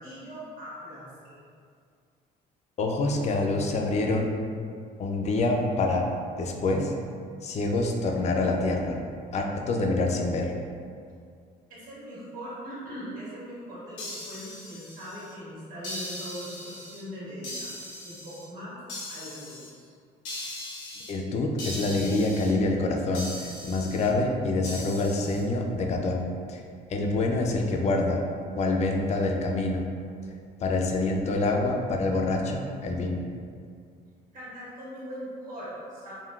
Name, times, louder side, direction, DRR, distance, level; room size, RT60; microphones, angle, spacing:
voice 1, 0.0-1.4 11.7-17.7 18.0-18.8 19.1-19.9 34.3-36.1, equal, 55° right, -8 dB, 1.4 m, -40 dB
voice 2, 2.8-4.3 5.0-6.1 6.4-6.9 7.4-9.0 9.3-10.5 21.1-26.2 26.5-26.6 26.9-28.3 28.5-29.9 30.6-33.2, left 2 dB, 40° left, 2 dB, 0.4 m, -26 dB
sound 1, 14.0-15.3 15.8-17.0 17.4-18.4 18.9-19.7 20.2-21.1 21.6-22.5 23.1-24.1 24.6-25.4, left 1 dB, 80° left, 0.9 m, -39 dB
3.6 x 2.2 x 2.3 m, 2.2 s
cardioid pair, 110°, 17 cm